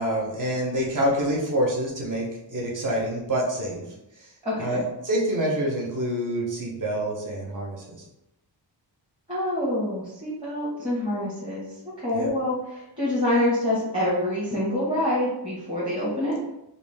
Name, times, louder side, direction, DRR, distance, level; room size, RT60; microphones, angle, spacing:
voice 1, 0.0-3.8 4.2-4.3 4.6-8.0 12.1-12.3, equal, 45° right, -2 dB, 1.1 m, -27 dB
voice 2, 4.4-4.8 9.3-11.7 12.0-16.3, left 1 dB, 10° right, -9 dB, 1.4 m, -26 dB
4.8 x 2.7 x 3.5 m, 0.87 s
wide cardioid pair, 110°, 44 cm